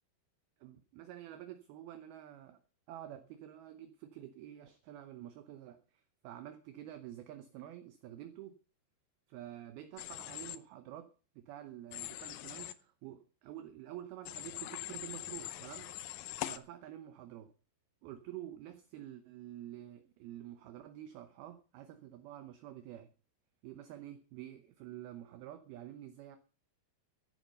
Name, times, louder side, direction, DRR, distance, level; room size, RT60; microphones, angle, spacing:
voice 1, 0.6-2.6 2.9-8.6 9.3-11.1 11.4-15.9 16.4-17.5 18.0-23.1 23.6-26.4, right 12 dB, 75° right, 2.6 m, -49 dB
Human voice / Train, 10.0-10.6 11.9-12.7 14.2-16.6, left 14 dB, 85° left, 1.9 m, -42 dB
13.5 x 11.0 x 5.4 m
omnidirectional pair, 4.9 m